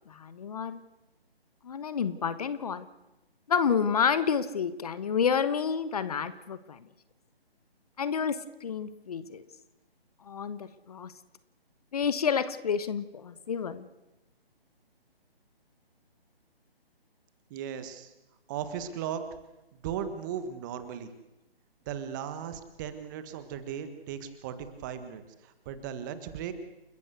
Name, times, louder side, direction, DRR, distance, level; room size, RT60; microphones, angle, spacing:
voice 1, 0.1-0.8 1.6-2.9 3.5-6.8 8.0-9.4 10.2-11.1 11.9-13.9, left 6 dB, 40° left, 14 dB, 1.2 m, -29 dB
voice 2, 17.5-18.1 18.5-19.2 19.8-21.1 21.8-26.5, right 8 dB, 20° right, 10 dB, 1.5 m, -37 dB
29.5 x 14.5 x 8.2 m, 0.96 s
figure-of-eight pair, 150°, 31 cm